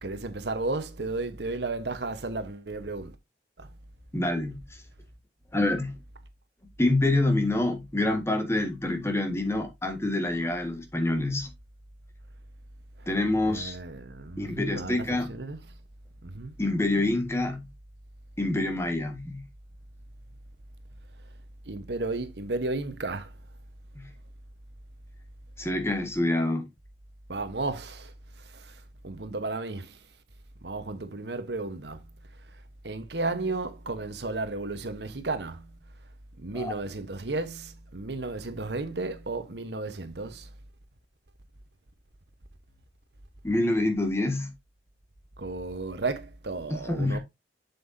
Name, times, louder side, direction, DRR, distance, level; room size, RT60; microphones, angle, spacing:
voice 1, 0.0-3.1 3.6-3.7 13.4-15.0 15.3-15.6 16.2-16.5 21.7-23.3 27.3-28.1 28.5-28.8 29.0-30.0 30.6-32.1 32.8-35.7 36.4-40.5 45.4-47.2, right 3 dB, 70° right, 1.1 m, -33 dB
voice 2, 4.1-4.6 5.5-6.0 6.8-11.5 13.1-13.8 14.4-15.3 16.6-17.7 18.4-19.4 23.9-24.1 25.6-26.7 36.5-36.7 43.4-44.5 46.8-47.2, left 2 dB, 15° left, 1.6 m, -26 dB
7.6 x 7.0 x 2.7 m
head